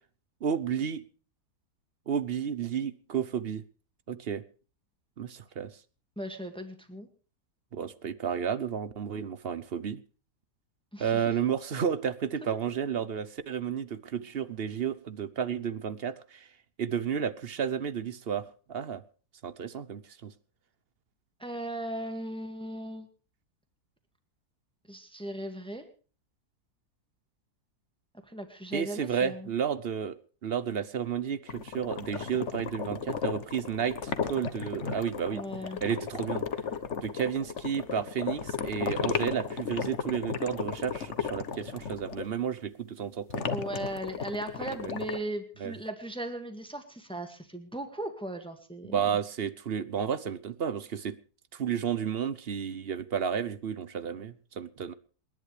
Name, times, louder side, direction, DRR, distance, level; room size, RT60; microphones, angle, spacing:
voice 1, 0.4-1.0 2.1-3.6 4.1-4.4 5.2-5.7 7.7-10.0 11.0-16.5 16.8-19.0 19.4-20.3 28.7-30.2 30.4-35.4 35.8-36.5 37.0-43.5 44.8-44.9 45.6-45.7 48.8-51.2 51.5-54.9, right 8 dB, 50° right, 15 dB, 0.8 m, -32 dB
voice 2, 6.2-7.1 10.9-11.2 21.4-23.1 24.9-25.8 28.2-29.5 35.3-35.8 43.5-49.2, right 1 dB, 5° left, 7 dB, 1.9 m, -37 dB
sound 1, 31.5-42.3 43.3-45.2, left 6 dB, 50° left, 1.3 m, -35 dB
28.0 x 11.0 x 3.3 m, 0.39 s
omnidirectional pair, 1.7 m